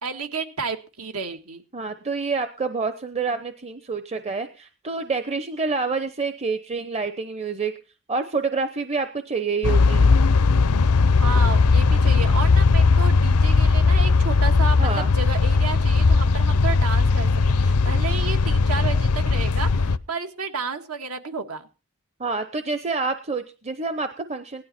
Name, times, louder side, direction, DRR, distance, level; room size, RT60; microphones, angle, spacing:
voice 1, 0.0-1.6 11.2-17.3 17.6-21.7, right 4 dB, 80° right, 6 dB, 1.9 m, -31 dB
voice 2, 1.7-7.7 8.1-10.1 14.8-15.1 22.2-24.6, right 4 dB, 30° right, 9 dB, 0.8 m, -27 dB
sound 1, 9.6-20.0, left 4 dB, 90° left, 0.6 m, -18 dB
17.0 x 11.5 x 4.3 m, 0.34 s
head